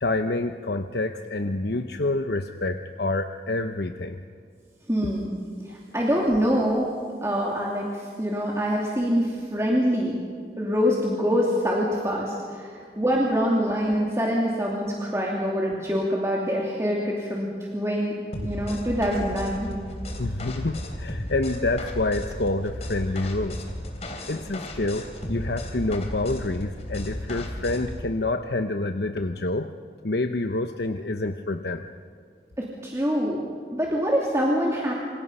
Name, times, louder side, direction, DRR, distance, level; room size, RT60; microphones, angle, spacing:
voice 1, 0.0-4.2 20.2-23.6 24.3-29.7 30.0-31.9, left 2 dB, 70° left, 7 dB, 0.9 m, -27 dB
voice 2, 4.9-5.4 5.7-6.9 7.2-10.2 10.6-17.5 17.7-18.1 18.4-19.7 32.6-33.4 33.7-34.9, equal, 15° right, -3 dB, 2.8 m, -25 dB
sound 1, 18.3-28.0, left 1 dB, 35° left, 3.2 m, -34 dB
27.0 x 27.0 x 5.6 m, 2.1 s
head